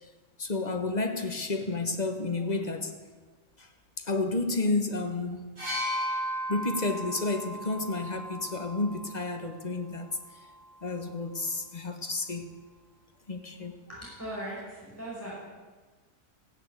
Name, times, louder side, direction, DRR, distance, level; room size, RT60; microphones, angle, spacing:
voice 1, 0.4-2.9 3.6-3.7 4.0-5.5 6.5-10.1 10.8-12.6 13.3-13.8, left 3 dB, 30° left, 6 dB, 1.3 m, -31 dB
sound 1, 5.6-9.4 10.4-10.6, equal, 60° right, 5.1 m, -35 dB
voice 2, 13.9-15.3, right 1 dB, 10° left, -7 dB, 5.4 m, -39 dB
15.0 x 10.5 x 8.3 m, 1.3 s
omnidirectional pair, 1.6 m